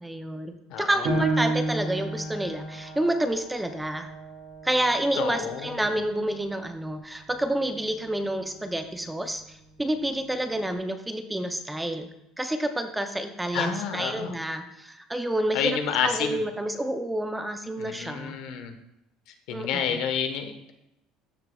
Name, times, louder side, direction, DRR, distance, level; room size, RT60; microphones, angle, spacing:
voice 1, 0.0-4.1 4.6-9.4 9.8-12.1 12.4-18.3 19.5-20.0, right 1 dB, 5° right, 7 dB, 0.5 m, -29 dB
voice 2, 0.7-1.1 5.2-5.9 13.5-14.3 15.5-16.4 17.8-18.7 19.5-20.7, left 7 dB, 65° left, 7 dB, 1.1 m, -29 dB
Piano, 1.0-6.2 6.7-6.8 7.4-7.9, right 2 dB, 70° right, 2.5 m, -32 dB
13.0 x 6.5 x 2.3 m, 0.84 s
cardioid pair, 150°, 0 cm